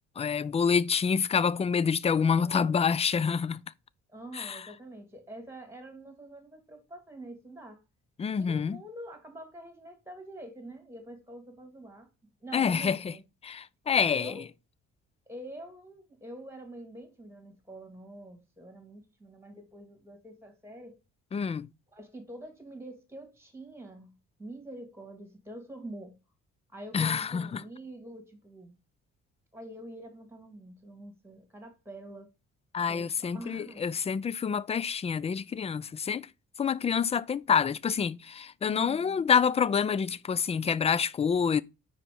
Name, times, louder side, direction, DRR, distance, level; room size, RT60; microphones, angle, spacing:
voice 1, 0.2-3.6 4.3-4.7 8.2-8.8 12.5-13.1 13.4-14.4 21.3-21.7 26.9-27.6 32.7-36.3 36.6-41.6, left 6 dB, 20° left, 0.3 m, -27 dB
voice 2, 2.3-2.8 4.1-7.8 8.4-13.2 14.1-14.4 15.3-21.0 21.9-26.2 26.7-28.7 29.5-32.3 32.9-33.9 38.6-39.2, right 1 dB, 10° right, 2.3 m, -46 dB
4.8 x 4.4 x 5.3 m
cardioid pair, 90°, 30 cm